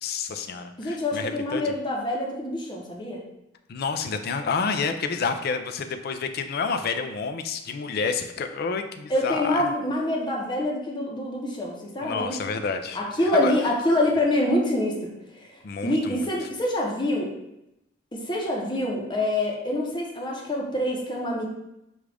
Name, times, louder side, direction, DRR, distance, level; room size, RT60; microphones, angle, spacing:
voice 1, 0.0-1.7 3.7-9.7 12.0-13.0 13.4-13.6 15.6-16.3, left 5 dB, 55° left, 7 dB, 0.4 m, -29 dB
voice 2, 0.8-3.2 9.1-12.4 12.9-17.3 18.1-21.5, left 1 dB, 25° left, -2 dB, 0.8 m, -26 dB
6.2 x 2.4 x 3.3 m, 0.87 s
head